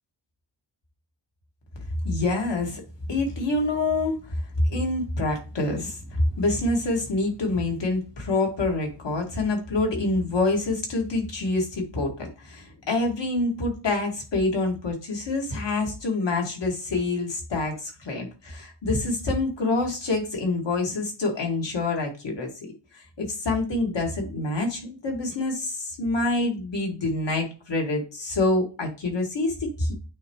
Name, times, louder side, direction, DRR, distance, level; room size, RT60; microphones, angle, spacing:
voice 1, 2.0-2.8 3.1-22.5 22.9-29.9, left 2 dB, 70° left, 1 dB, 2.0 m, -26 dB
8.8 x 3.5 x 3.1 m, 0.32 s
wide cardioid pair, 150°, 45 cm